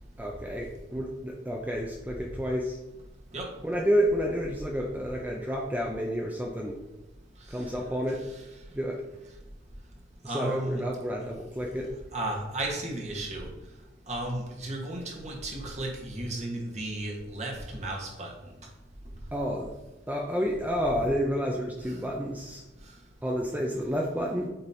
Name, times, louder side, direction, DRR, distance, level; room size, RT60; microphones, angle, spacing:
voice 1, 0.2-2.8 3.6-6.8 7.5-8.2 8.7-9.0 10.2-11.9 19.3-19.7 20.1-22.6 23.2-24.5, equal, 10° right, -1 dB, 0.5 m, -30 dB
voice 2, 10.2-10.8 12.1-13.5 14.1-18.3, right 1 dB, 35° right, 0 dB, 1.2 m, -34 dB
7.9 x 2.9 x 4.2 m, 1.0 s
head